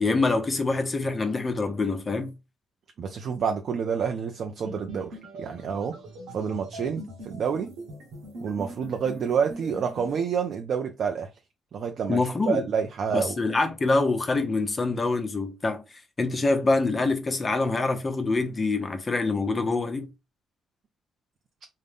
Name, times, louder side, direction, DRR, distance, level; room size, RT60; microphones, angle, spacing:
voice 1, 0.0-2.3 12.1-12.7 13.1-15.8 16.2-20.1, left 3 dB, 25° left, 0.7 m, -25 dB
voice 2, 3.0-6.0 6.3-7.7 8.4-11.3 11.7-13.4, right 6 dB, 60° right, 0.5 m, -28 dB
sound 1, 4.6-10.2, equal, 85° right, 1.2 m, -42 dB
3.9 x 2.1 x 3.4 m
cardioid pair, 90°, 0 cm